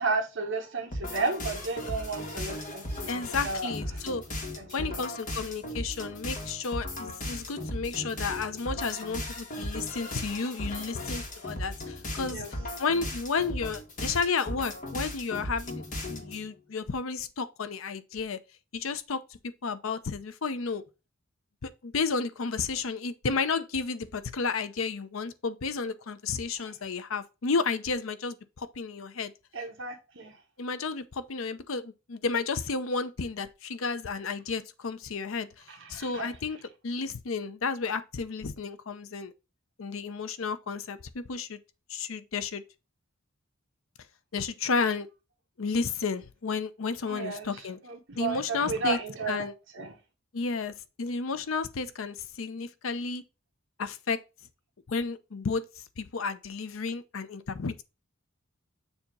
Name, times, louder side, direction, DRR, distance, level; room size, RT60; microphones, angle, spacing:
voice 1, 0.0-3.7 4.6-5.0 12.2-12.5 29.5-30.3 35.7-36.3 47.1-47.5 47.8-49.5 49.7-49.9, right 3 dB, 65° right, 1.2 m, -33 dB
sound 1, 0.9-16.4, left 1 dB, 40° left, 1.6 m, -37 dB
voice 2, 3.1-4.2 4.7-12.5 12.8-18.4 18.7-19.2 19.6-20.8 21.6-29.3 30.6-36.6 36.8-39.3 39.8-41.6 41.9-42.6 44.3-45.1 45.6-47.8 48.2-49.0 49.3-49.5 50.3-53.2 53.8-54.2 54.9-55.6 56.0-57.8, left 4 dB, 70° left, 0.6 m, -32 dB
7.0 x 2.9 x 5.2 m
head